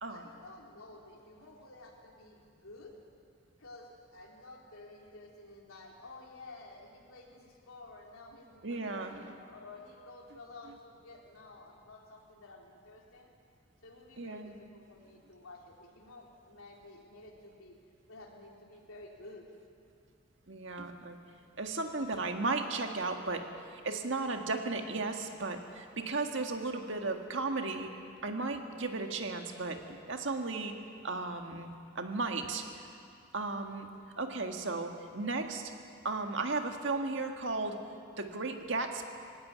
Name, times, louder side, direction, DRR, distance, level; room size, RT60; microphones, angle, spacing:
voice 1, 0.1-3.0 3.6-13.3 13.8-17.8 18.1-19.5, left 2 dB, 90° left, 0 dB, 3.6 m, -52 dB
voice 2, 8.6-9.3 14.2-14.6 20.5-21.2 21.6-23.5 23.7-27.9 28.2-30.7 31.0-31.7 32.0-32.9 33.3-33.9 34.2-35.7 36.0-37.8 38.2-39.0, right 3 dB, 60° right, 4 dB, 1.8 m, -35 dB
19.5 x 17.0 x 9.5 m, 2.4 s
head